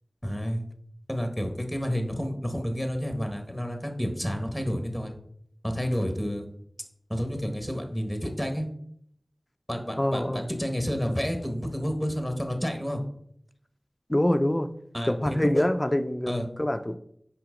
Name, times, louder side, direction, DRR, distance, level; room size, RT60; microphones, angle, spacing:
voice 1, 0.2-0.6 1.1-5.1 5.6-6.4 7.1-8.7 9.7-13.0 14.9-15.7 16.3-16.4, equal, ahead, 4 dB, 1.4 m, -30 dB
voice 2, 10.0-10.5 14.1-14.7 15.1-17.0, left 1 dB, 25° left, 8 dB, 0.5 m, -25 dB
5.9 x 5.1 x 5.1 m, 0.68 s
wide cardioid pair, 60°, 0 cm